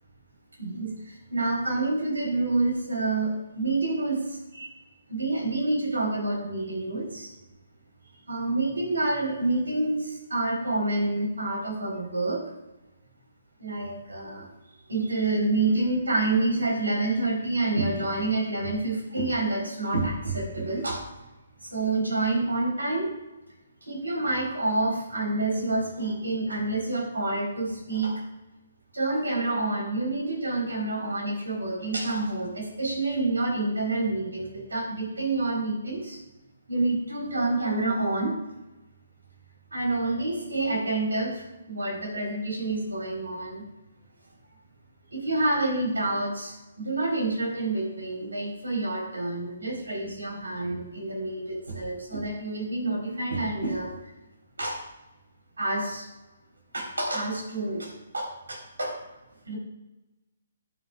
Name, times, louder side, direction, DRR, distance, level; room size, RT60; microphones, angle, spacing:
voice 1, 0.6-0.9 1.3-4.2 4.5-4.7 5.1-7.3 8.3-12.4 13.6-14.5 14.9-21.0 21.7-23.1 23.9-28.1 28.9-36.2 36.7-38.3 39.7-43.6 45.1-53.9 54.6-54.8 55.6-56.0 56.7-58.9 59.5-59.6, right 2 dB, 90° right, -2 dB, 4.1 m, -28 dB
21.0 x 7.4 x 2.5 m, 1.0 s
hypercardioid pair, 145°, 0 cm